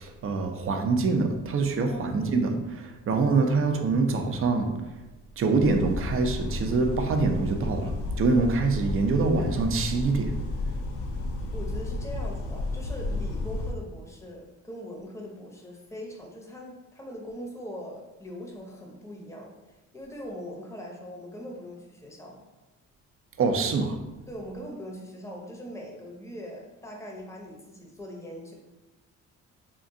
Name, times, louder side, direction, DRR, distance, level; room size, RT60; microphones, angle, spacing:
voice 1, 0.0-5.0 5.4-10.4 23.4-24.0, right 3 dB, 45° right, 0.5 m, -25 dB
voice 2, 1.8-2.2 11.5-19.5 19.9-22.4 24.3-28.5, equal, 10° left, 0.7 m, -41 dB
sound 1, 5.6-13.7, left 2 dB, 75° left, 0.5 m, -32 dB
3.6 x 2.4 x 2.6 m
cardioid pair, 90°, 30 cm